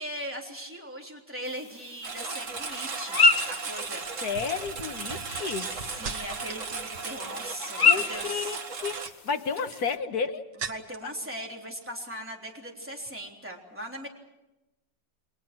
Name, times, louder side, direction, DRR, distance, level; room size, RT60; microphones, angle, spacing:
voice 1, 0.0-3.2 3.5-4.1 5.6-8.6 9.6-9.7 10.6-14.1, equal, 5° right, 0 dB, 3.5 m, -39 dB
sound 1, 1.4-10.0, left 4 dB, 35° left, 1.2 m, -30 dB
Engine, 2.0-9.1, right 4 dB, 45° right, 1.8 m, -36 dB
sound 2, 3.3-3.6 4.3-6.7 7.0-7.5 8.7-11.2 11.5-12.1 12.4-12.7, right 6 dB, 70° right, 1.9 m, -42 dB
voice 2, 4.2-5.7 7.8-8.6 8.8-9.0 9.2-10.4, left 5 dB, 55° left, 7 dB, 1.7 m, -31 dB
29.5 x 22.0 x 6.1 m, 0.97 s
omnidirectional pair, 2.0 m